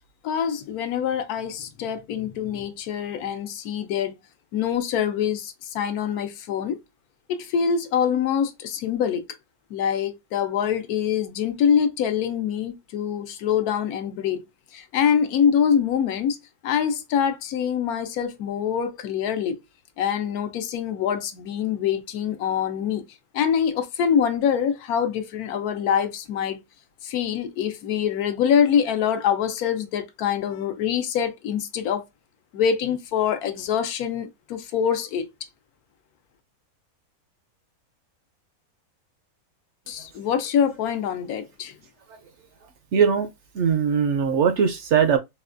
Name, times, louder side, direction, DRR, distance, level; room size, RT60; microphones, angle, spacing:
voice 1, 0.2-4.2 4.5-6.8 7.3-9.2 9.7-14.4 14.7-16.4 16.6-19.6 20.0-23.0 23.3-26.6 27.0-32.0 32.5-35.3 39.9-41.8, left 8 dB, 90° left, 1.1 m, -24 dB
voice 2, 42.9-43.3 43.5-45.2, right 7 dB, 65° right, 0.7 m, -20 dB
4.1 x 2.2 x 2.5 m
omnidirectional pair, 1.5 m